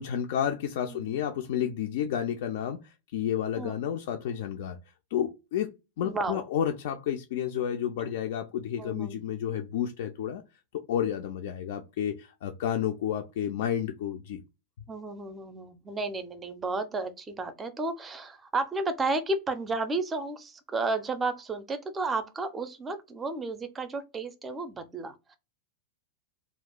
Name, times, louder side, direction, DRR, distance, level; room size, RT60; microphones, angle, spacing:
voice 1, 0.0-4.8 5.1-5.7 6.0-10.4 10.9-14.4, left 9 dB, 55° left, 0.3 m, -31 dB
voice 2, 6.0-6.4 8.8-9.2 14.9-25.4, right 3 dB, 20° right, 0.4 m, -32 dB
2.4 x 2.2 x 3.5 m
figure-of-eight pair, 90°, 0 cm